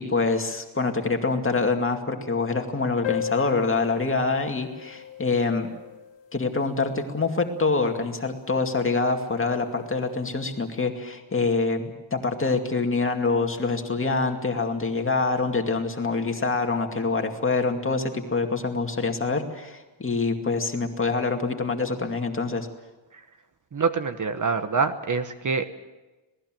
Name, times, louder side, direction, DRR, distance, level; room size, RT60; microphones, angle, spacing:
voice 1, 0.0-5.7 6.3-22.7, left 3 dB, 25° left, 4 dB, 2.3 m, -25 dB
sound 1, 3.0-8.0, left 10 dB, 65° left, 1.8 m, -37 dB
voice 2, 23.7-25.7, right 5 dB, 40° right, 9 dB, 1.2 m, -25 dB
26.5 x 19.0 x 7.7 m, 1.1 s
wide cardioid pair, 160°, 48 cm